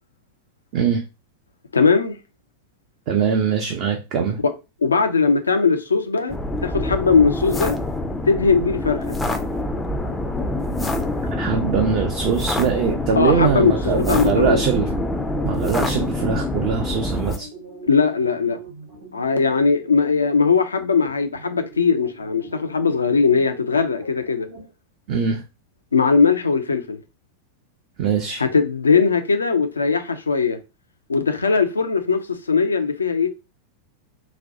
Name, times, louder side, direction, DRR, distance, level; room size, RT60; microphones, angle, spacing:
voice 1, 1.7-2.2 4.8-6.4 6.6-7.8 8.3-9.2 13.2-14.6 17.8-18.6 19.1-24.5 25.9-27.0 28.4-30.6 31.1-33.3, left 5 dB, 75° left, 0.5 m, -19 dB
voice 2, 3.1-4.4 11.4-14.9 15.4-17.5 25.1-25.4 28.0-28.4, right 6 dB, 45° right, 0.5 m, -22 dB
sound 1, 6.3-17.4, left 1 dB, 10° left, 0.5 m, -26 dB
sound 2, 8.6-24.7, right 2 dB, 60° right, 1.5 m, -42 dB
4.0 x 2.2 x 2.7 m
figure-of-eight pair, 90°, 0 cm